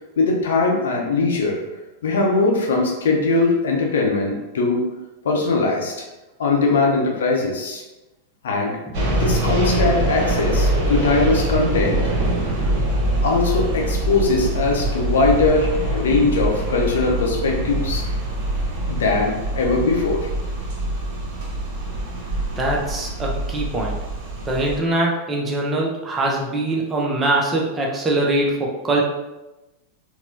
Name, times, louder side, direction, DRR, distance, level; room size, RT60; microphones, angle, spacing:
voice 1, 0.2-1.6 2.0-4.8 5.2-6.0 6.4-7.8 8.4-8.8 9.1-12.0 13.2-18.0 18.9-20.3, left 3 dB, 60° left, 0 dB, 0.7 m, -20 dB
sound 1, 8.9-24.8, right 1 dB, 45° right, 0.8 m, -24 dB
voice 2, 22.6-24.0 24.5-29.0, right 2 dB, 20° right, -2 dB, 0.7 m, -22 dB
4.1 x 2.2 x 2.8 m, 1.0 s
figure-of-eight pair, 90°, 0 cm